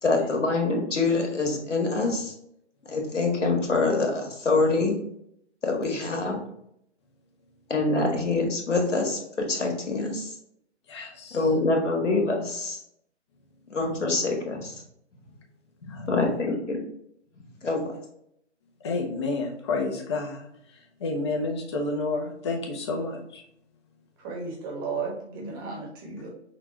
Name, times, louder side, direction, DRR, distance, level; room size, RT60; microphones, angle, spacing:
voice 1, 0.0-2.3 2.8-5.0 5.6-6.4 7.7-10.4 11.3-12.8 13.7-14.8 15.9-16.9 17.6-17.9, left 3 dB, 90° left, 1 dB, 1.6 m, -25 dB
voice 2, 10.9-11.4 15.9-16.4 18.8-20.5 21.0-23.4, left 3 dB, 25° left, 1 dB, 0.7 m, -30 dB
voice 3, 24.2-26.3, right 4 dB, 20° right, 0 dB, 1.1 m, -34 dB
5.8 x 2.4 x 3.1 m, 0.73 s
hypercardioid pair, 150°, 35 cm